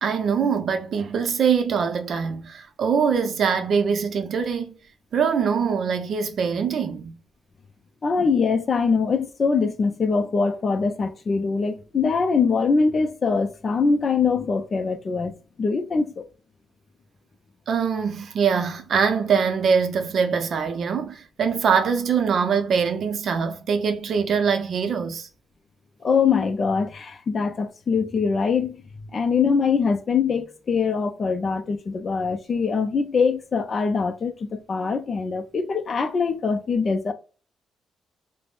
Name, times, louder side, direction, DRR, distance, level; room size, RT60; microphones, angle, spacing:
voice 1, 0.0-4.7 5.1-7.2 17.7-25.3, right 6 dB, 55° right, 0.5 m, -23 dB
voice 2, 8.0-16.2 26.0-28.8 29.1-37.1, left 5 dB, 35° left, 0.4 m, -23 dB
3.4 x 2.0 x 2.4 m
cardioid pair, 135°, 0 cm